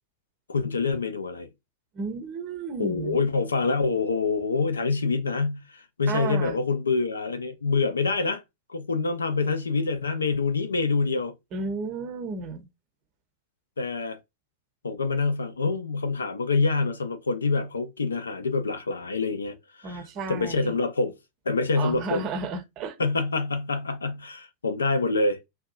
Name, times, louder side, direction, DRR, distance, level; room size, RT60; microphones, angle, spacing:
voice 1, 0.5-1.5 2.8-8.4 8.7-11.3 13.8-14.2 14.8-20.0 20.3-21.2 21.5-22.2 23.0-25.4, left 4 dB, 75° left, 0.4 m, -26 dB
voice 2, 1.9-3.2 6.1-6.6 11.5-12.7 19.8-20.8 21.8-23.0, right 4 dB, 35° right, 0.6 m, -32 dB
2.6 x 2.2 x 2.3 m
figure-of-eight pair, 90°, 0 cm